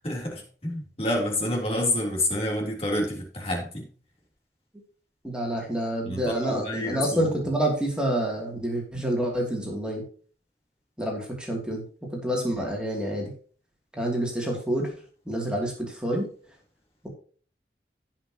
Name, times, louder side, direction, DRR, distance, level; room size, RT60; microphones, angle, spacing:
voice 1, 0.0-3.9 6.0-7.3, left 1 dB, 35° left, -1 dB, 3.4 m, -28 dB
voice 2, 5.2-10.0 11.0-11.8 12.1-13.3 13.9-14.9 15.3-16.3, right 1 dB, 5° right, -1 dB, 2.8 m, -28 dB
17.5 x 5.9 x 3.0 m, 0.43 s
head